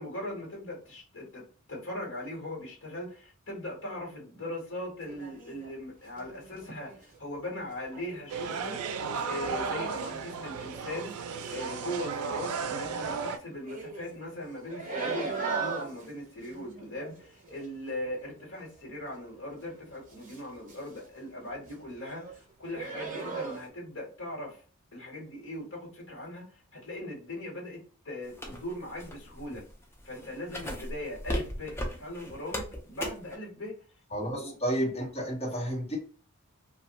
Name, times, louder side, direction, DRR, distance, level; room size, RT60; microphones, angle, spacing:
voice 1, 0.0-1.4 1.7-8.8 9.3-24.6 24.9-26.4 26.7-27.8 28.0-29.6 30.0-33.7 34.4-34.5, left 1 dB, 60° left, -2 dB, 1.3 m, -39 dB
sound 1, 5.0-5.7 6.1-7.2 7.8-11.8 12.1-13.2 13.6-19.4 19.6-21.2 21.5-22.4 22.6-23.7, right 4 dB, 35° right, 0.7 m, -40 dB
sound 2, 8.3-13.4, right 5 dB, 85° right, 0.4 m, -34 dB
sound 3, 28.3-33.4, equal, 10° left, 0.5 m, -36 dB
voice 2, 34.1-36.0, equal, 30° left, -3 dB, 1.2 m, -31 dB
2.6 x 2.3 x 2.9 m, 0.40 s
head